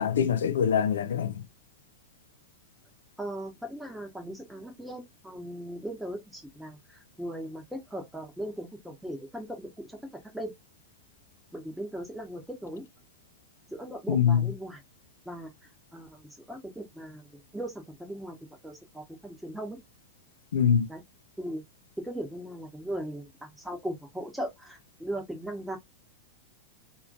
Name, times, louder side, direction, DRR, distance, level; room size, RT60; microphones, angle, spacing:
voice 1, 0.0-1.4 14.1-14.5 20.5-20.9, left 8 dB, 65° left, 0.3 m, -24 dB
voice 2, 3.2-10.5 11.5-12.8 13.7-14.8 15.2-15.5 15.9-18.4 18.6-19.8 20.9-21.0 21.4-21.6 22.0-25.8, right 1 dB, 5° right, 0.9 m, -38 dB
3.0 x 2.6 x 2.2 m
figure-of-eight pair, 90°, 0 cm